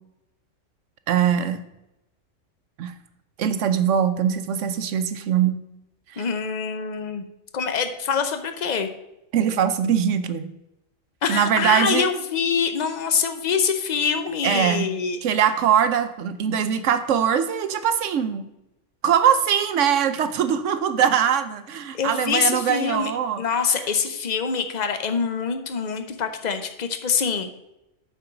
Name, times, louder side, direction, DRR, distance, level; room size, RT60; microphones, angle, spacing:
voice 1, 1.1-1.6 2.8-2.9 3.4-5.6 6.1-6.3 9.3-10.5 11.3-12.1 14.4-14.8 15.2-18.5 19.0-23.6, right 8 dB, 70° right, 10 dB, 0.9 m, -22 dB
voice 2, 6.2-7.2 7.5-8.9 11.2-15.2 21.9-23.1 23.4-27.5, left 6 dB, 40° left, 8 dB, 0.8 m, -25 dB
8.7 x 4.7 x 5.8 m, 0.91 s
omnidirectional pair, 1.3 m